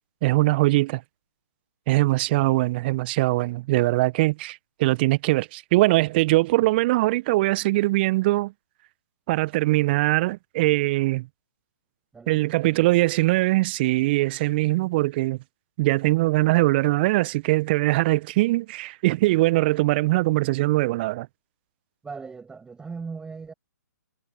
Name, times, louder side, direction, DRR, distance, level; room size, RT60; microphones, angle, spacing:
voice 1, 0.2-1.0 1.9-8.5 9.3-11.3 12.3-15.4 15.8-21.3, right 20 dB, 35° right, 1.1 m, -22 dB
voice 2, 12.1-12.9 22.0-23.5, right 5 dB, 10° right, 7.2 m, -39 dB
figure-of-eight pair, 130°, 10 cm